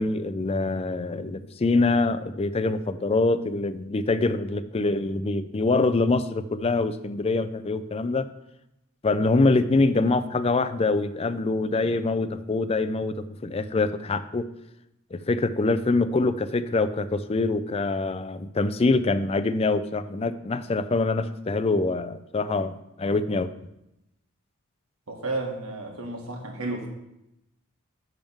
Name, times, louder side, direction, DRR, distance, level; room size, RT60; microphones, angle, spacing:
voice 1, 0.0-8.3 9.0-14.5 15.1-23.5, left 3 dB, 25° left, 13 dB, 0.4 m, -24 dB
voice 2, 25.1-26.9, right 2 dB, 80° right, 1 dB, 1.8 m, -32 dB
10.5 x 3.6 x 7.1 m, 0.87 s
head